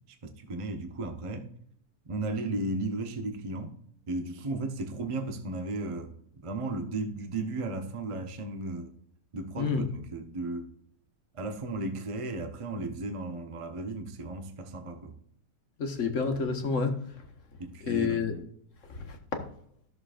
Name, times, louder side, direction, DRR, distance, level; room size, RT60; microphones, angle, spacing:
voice 1, 0.1-1.5 2.0-3.8 4.1-6.1 6.4-8.9 9.3-10.7 11.3-15.1 17.6-18.5, right 2 dB, 25° right, 0.7 m, -35 dB
voice 2, 15.8-17.0 17.8-18.3 18.9-19.4, left 5 dB, 55° left, 1.4 m, -29 dB
14.0 x 6.7 x 2.5 m
omnidirectional pair, 1.7 m